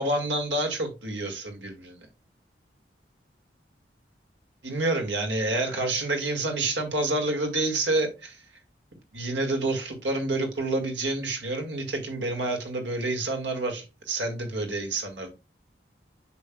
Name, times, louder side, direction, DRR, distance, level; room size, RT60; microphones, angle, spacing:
voice 1, 0.0-2.1 4.6-8.4 9.1-15.3, right 2 dB, 85° right, 1.9 m, -28 dB
8.0 x 6.3 x 2.2 m
head